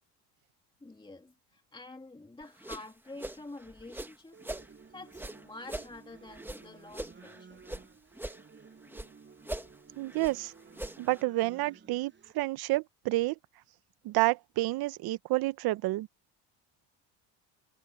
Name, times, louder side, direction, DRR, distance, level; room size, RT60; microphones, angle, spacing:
voice 1, 0.8-4.4 4.6-7.6, left 2 dB, 10° left, 2.4 m, -48 dB
sound 1, 2.4-4.7 5.1-7.9 8.1-9.1 9.4-11.2, right 1 dB, 5° right, 1.6 m, -42 dB
sound 2, 4.3-12.3, right 5 dB, 30° right, 7.5 m, -55 dB
voice 2, 10.0-10.5 11.0-13.3 14.0-16.1, right 19 dB, 70° right, 0.9 m, -29 dB
supercardioid pair, 95°, 39 cm